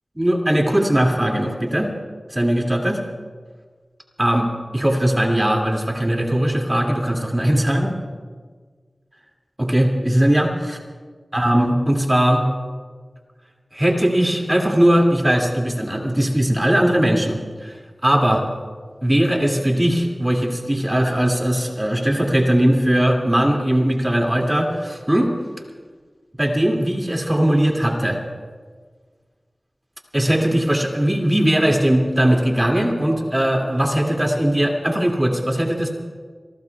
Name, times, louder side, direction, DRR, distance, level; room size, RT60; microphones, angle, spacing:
voice 1, 0.2-1.9 2.3-3.0 4.2-4.5 4.7-7.9 9.6-10.8 11.3-12.5 13.7-17.7 18.0-18.4 19.0-25.3 26.4-28.2 30.1-35.9, right 1 dB, 25° right, 1 dB, 2.4 m, -19 dB
28.0 x 19.0 x 2.4 m, 1.5 s
wide cardioid pair, 45°, 0 cm